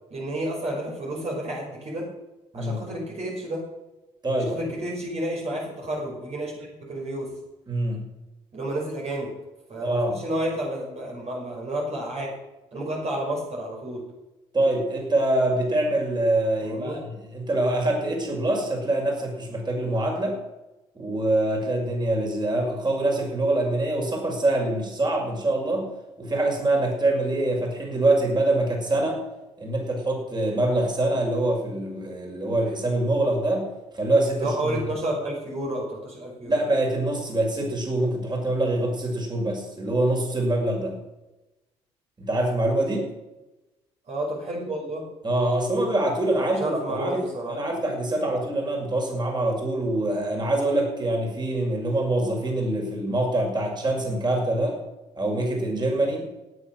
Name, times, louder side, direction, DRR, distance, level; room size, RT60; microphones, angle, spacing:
voice 1, 0.1-2.1 2.5-3.6 4.4-7.3 8.5-9.3 9.7-12.3 12.7-14.0 16.6-17.0 34.4-36.6 44.1-45.1 46.3-47.6, right 1 dB, 50° right, -2 dB, 5.5 m, -31 dB
voice 2, 4.2-4.7 7.7-8.0 9.8-10.2 14.5-20.4 20.9-25.9 26.2-29.2 29.6-34.8 36.5-41.0 42.2-43.1 45.2-54.8 55.1-56.3, right 1 dB, 30° right, 1 dB, 6.2 m, -25 dB
17.5 x 8.9 x 6.3 m, 1.0 s
hypercardioid pair, 50°, 14 cm